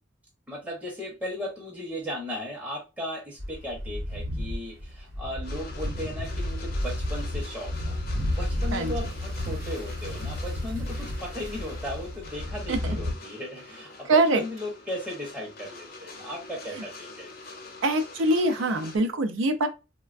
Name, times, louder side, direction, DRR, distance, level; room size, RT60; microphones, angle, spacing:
voice 1, 0.5-8.0 8.4-17.3, equal, 10° right, 0.7 m, -36 dB
sound 1, 3.4-13.1, left 1 dB, 50° right, 0.9 m, -32 dB
sound 2, 5.4-19.0, left 3 dB, 50° left, 0.6 m, -45 dB
voice 2, 14.1-14.4 17.8-19.7, right 2 dB, 80° right, 0.5 m, -23 dB
3.2 x 2.2 x 2.4 m
head